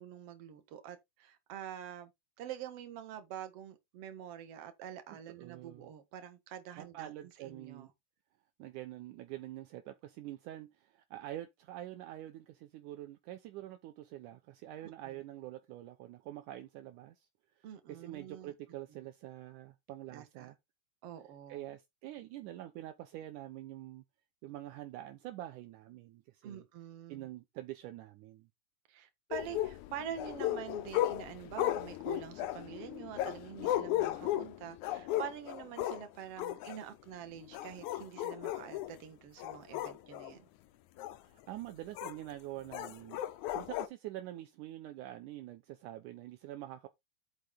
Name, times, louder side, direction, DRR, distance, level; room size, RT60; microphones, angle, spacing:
voice 1, 0.0-2.1 2.4-7.9 14.8-15.2 17.6-18.5 20.1-20.5 21.0-21.6 26.4-27.3 28.9-40.5, right 9 dB, 55° right, 2.1 m, -46 dB
voice 2, 5.4-5.9 6.8-7.9 8.6-17.3 17.6-20.6 21.5-24.0 24.4-26.6 27.1-28.5 41.3-43.2 43.6-46.9, right 14 dB, 75° right, 2.1 m, -46 dB
sound 1, 29.3-36.0 36.4-36.8 37.4-38.9 39.4-40.3 41.0-41.2 42.0-42.1 42.7-43.9, left 14 dB, 70° left, 2.0 m, -35 dB
8.2 x 6.6 x 3.9 m
omnidirectional pair, 3.9 m